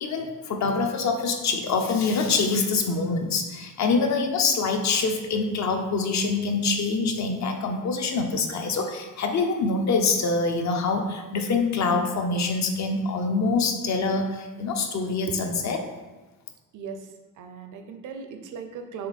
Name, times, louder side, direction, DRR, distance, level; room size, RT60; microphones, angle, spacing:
voice 1, 0.0-15.8, left 4 dB, 55° left, 4 dB, 0.8 m, -25 dB
voice 2, 17.4-19.1, right 6 dB, 65° right, 6 dB, 0.7 m, -37 dB
6.6 x 3.5 x 4.2 m, 1.2 s
cardioid pair, 155°, 33 cm